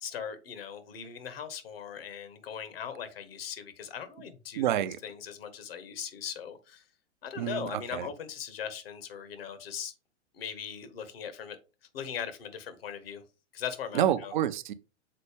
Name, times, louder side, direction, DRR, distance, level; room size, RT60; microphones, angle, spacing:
voice 1, 0.0-4.7 5.0-6.8 7.2-9.9 10.3-11.6 11.9-13.2 13.5-14.3, left 8 dB, 55° left, 1.3 m, -39 dB
voice 2, 4.6-5.0 7.4-8.1 13.9-14.7, right 11 dB, 40° right, 0.6 m, -28 dB
6.7 x 4.1 x 3.4 m
figure-of-eight pair, 105°, 36 cm